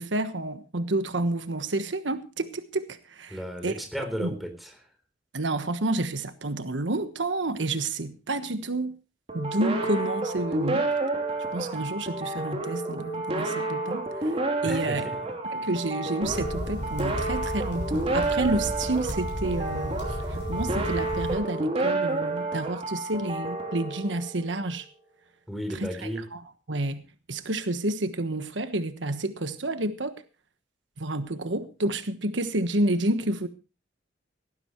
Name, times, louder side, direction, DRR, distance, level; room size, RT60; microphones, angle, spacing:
voice 1, 0.0-2.9 3.2-3.4 3.6-3.7 4.2-4.3 5.3-8.9 9.3-10.9 11.5-14.3 14.6-15.0 15.5-20.0 20.5-24.8 26.0-26.1 26.7-27.0 27.3-30.2 31.0-33.5, right 2 dB, 90° right, 1.3 m, -29 dB
voice 2, 3.3-4.9 14.6-15.3 15.6-15.7 25.5-26.3, equal, ahead, 3.7 m, -34 dB
sound 1, 9.3-24.7, right 2 dB, 35° right, 3.5 m, -30 dB
sound 2, 16.2-21.4, equal, 75° left, 6.7 m, -34 dB
18.5 x 15.0 x 3.1 m
head